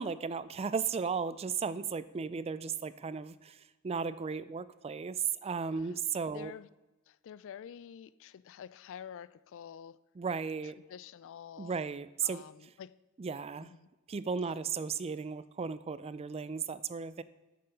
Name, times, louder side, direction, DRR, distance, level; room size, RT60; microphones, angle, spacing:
voice 1, 0.0-3.6 3.8-5.2 5.4-6.5 10.2-10.8 11.6-12.4 13.2-13.7 14.1-17.2, right 5 dB, 30° right, 0.4 m, -35 dB
voice 2, 6.3-6.7 7.1-10.0 10.6-11.8 12.2-12.9 13.6-13.9, left 8 dB, 65° left, 0.3 m, -48 dB
8.8 x 6.7 x 5.3 m
head